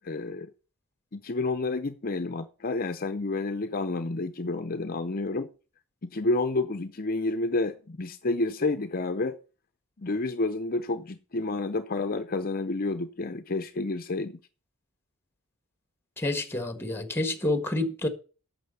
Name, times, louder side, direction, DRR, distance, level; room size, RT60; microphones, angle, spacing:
voice 1, 0.0-0.5 1.1-5.5 6.0-9.4 10.0-14.4, left 2 dB, 40° left, 0.7 m, -30 dB
voice 2, 16.2-18.1, left 2 dB, 10° left, 1.4 m, -28 dB
9.1 x 6.7 x 7.9 m
head